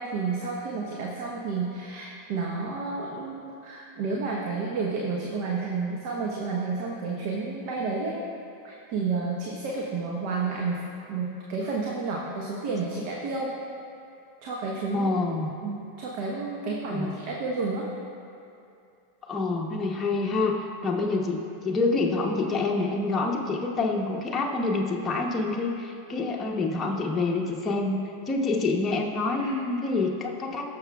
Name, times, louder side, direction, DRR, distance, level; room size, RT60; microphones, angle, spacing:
voice 1, 0.0-8.2 8.6-13.5 14.4-15.1 15.6-17.9 29.4-29.5, right 4 dB, 55° right, -2 dB, 1.0 m, -31 dB
voice 2, 14.9-15.5 16.9-17.2 19.3-30.7, left 3 dB, 20° left, -2 dB, 0.9 m, -27 dB
16.5 x 6.6 x 2.4 m, 2.7 s
hypercardioid pair, 105°, 0 cm